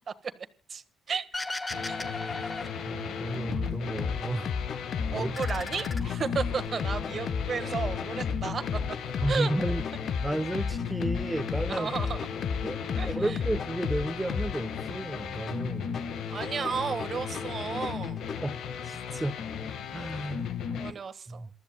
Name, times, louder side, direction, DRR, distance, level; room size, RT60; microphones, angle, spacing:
voice 1, 0.7-1.2 1.9-2.0 5.1-8.6 9.3-9.5 11.7-12.3 13.0-13.4 16.3-18.2 20.7-21.4, right 6 dB, 45° right, 1.5 m, -33 dB
sound 1, 1.3-3.7 4.0-4.8 5.2-6.7, left 2 dB, 20° left, 1.3 m, -38 dB
sound 2, 1.7-20.9, left 7 dB, 75° left, 1.6 m, -36 dB
voice 2, 2.9-4.5 5.1-5.4 9.2-9.8 10.2-11.9 12.6-16.0 18.4-18.6 18.9-19.3 19.9-20.5 21.3-21.5, right 1 dB, 10° right, 1.1 m, -32 dB
sound 3, 3.5-18.5, left 6 dB, 55° left, 0.8 m, -34 dB
27.5 x 13.0 x 2.2 m
cardioid pair, 90°, 0 cm